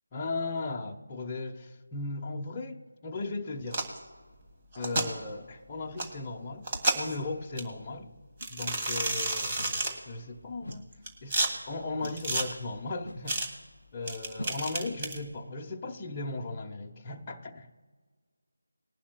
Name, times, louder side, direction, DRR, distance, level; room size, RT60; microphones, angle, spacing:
voice 1, 0.1-3.8 4.8-8.1 8.5-10.9 11.2-11.4 11.7-13.4 13.9-17.7, left 3 dB, 20° left, -1 dB, 0.8 m, -37 dB
sound 1, 3.7-4.0 4.7-5.1 6.0-6.1 6.6-7.2 7.6-7.7 8.4-9.9 10.7-11.5 12.0-12.4 13.3-13.5 14.1-15.2, right 2 dB, 30° right, 1.8 m, -30 dB
sound 2, 5.9-6.0 6.7-6.9 7.7-7.8 8.4-8.6 9.6-9.8 10.6-10.9 12.0-12.3 13.0-13.3 14.4-14.7, left 1 dB, 75° left, 0.7 m, -43 dB
20.5 x 11.5 x 2.3 m, 1.5 s
figure-of-eight pair, 165°, 0 cm